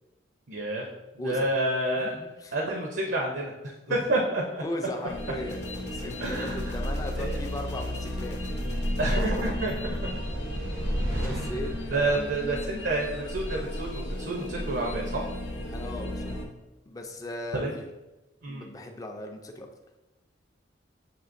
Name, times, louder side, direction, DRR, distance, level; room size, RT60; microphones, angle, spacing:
voice 1, 0.5-0.9 1.2-2.2 2.5-3.5 3.9-4.6 6.2-6.7 7.2-7.4 9.0-10.2 11.1-11.4 11.9-15.3 17.5-17.7 18.4-18.6, right 2 dB, 70° right, -1 dB, 0.6 m, -29 dB
voice 2, 2.0-2.5 3.9-4.0 4.6-8.4 10.6-10.8 11.1-12.3 15.7-16.5 16.9-17.9 18.5-19.7, left 1 dB, 20° left, 3 dB, 0.4 m, -37 dB
sound 1, 5.1-16.5, left 1 dB, 85° left, 0.7 m, -35 dB
Gunshot gunfire, 5.5-10.7, left 1 dB, 40° left, 0.9 m, -47 dB
sound 2, 7.6-15.6, equal, 85° right, 1.0 m, -33 dB
7.2 x 2.8 x 2.5 m, 1.1 s
head